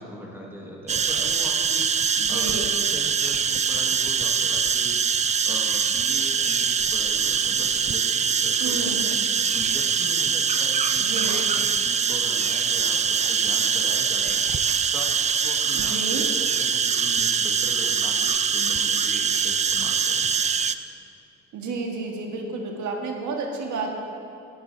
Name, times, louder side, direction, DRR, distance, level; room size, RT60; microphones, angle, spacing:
voice 1, 0.0-2.6 2.9-20.3, equal, 5° right, -3 dB, 1.7 m, -40 dB
sound 1, 0.9-20.7, right 6 dB, 25° right, 0.3 m, -23 dB
voice 2, 2.2-2.7 8.6-9.1 11.0-11.4 15.7-16.2 21.5-23.9, right 3 dB, 70° right, 1 dB, 1.6 m, -31 dB
12.0 x 11.5 x 2.7 m, 2.8 s
cardioid pair, 90°, 30 cm